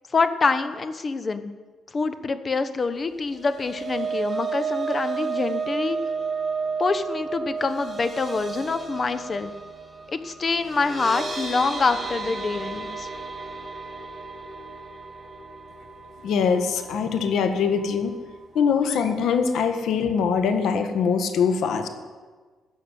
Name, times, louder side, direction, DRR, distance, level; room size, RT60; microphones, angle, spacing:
voice 1, 0.1-1.5 1.9-6.0 6.8-9.5 10.1-13.1, left 4 dB, 35° left, 11 dB, 1.1 m, -25 dB
sound 1, 3.2-17.4 17.8-18.0 18.3-18.4, right 5 dB, 30° right, 3.0 m, -32 dB
voice 2, 16.2-18.1 18.5-21.9, left 6 dB, 75° left, 7 dB, 1.6 m, -23 dB
15.5 x 6.6 x 9.2 m, 1.4 s
cardioid pair, 90°, 0 cm